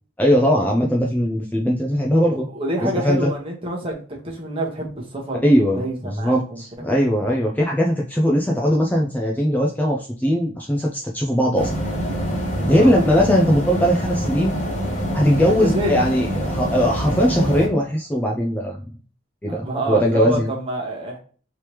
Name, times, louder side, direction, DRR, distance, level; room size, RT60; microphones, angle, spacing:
voice 1, 0.2-2.5 2.8-3.3 5.4-11.7 12.7-14.6 15.1-18.9 19.4-20.5, equal, 10° left, -2 dB, 0.4 m, -19 dB
voice 2, 2.3-6.6 7.2-7.4 12.6-12.9 15.6-15.9 19.5-21.2, right 1 dB, 30° right, -1 dB, 1.0 m, -27 dB
sound 1, 11.6-17.7, equal, 35° left, 1.1 m, -25 dB
3.3 x 3.0 x 2.9 m, 0.42 s
head